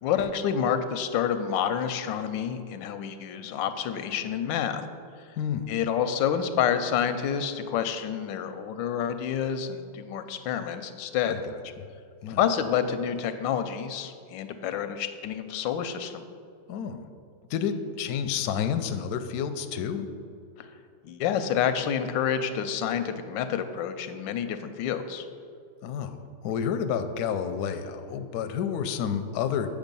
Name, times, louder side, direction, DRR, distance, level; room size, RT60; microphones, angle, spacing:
voice 1, 0.0-4.9 5.7-11.4 12.3-16.2 20.6-20.7 21.0-25.3, left 8 dB, 90° left, 10 dB, 1.3 m, -28 dB
voice 2, 5.4-5.7 11.3-11.5 12.2-12.4 16.7-17.1 17.5-20.1 25.8-29.7, left 7 dB, 70° left, 8 dB, 0.9 m, -30 dB
8.1 x 5.1 x 5.3 m, 2.4 s
omnidirectional pair, 2.0 m